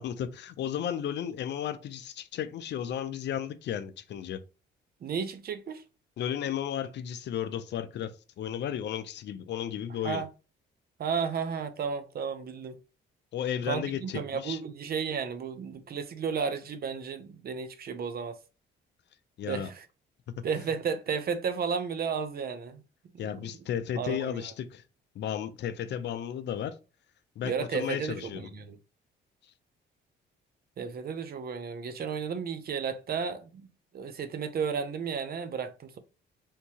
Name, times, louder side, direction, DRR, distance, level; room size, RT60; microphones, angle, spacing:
voice 1, 0.0-4.4 6.2-10.2 13.3-14.6 19.4-19.7 23.2-24.8 25.1-26.8 27.4-28.5, left 9 dB, 65° left, 0.5 m, -34 dB
voice 2, 5.0-5.8 10.0-10.3 11.0-12.8 13.7-18.4 19.5-19.9 20.4-22.8 23.1-23.3 24.0-24.4 27.4-28.8 30.8-33.7 33.9-36.0, right 6 dB, 50° right, 0.6 m, -33 dB
3.6 x 2.7 x 2.8 m
cardioid pair, 90°, 20 cm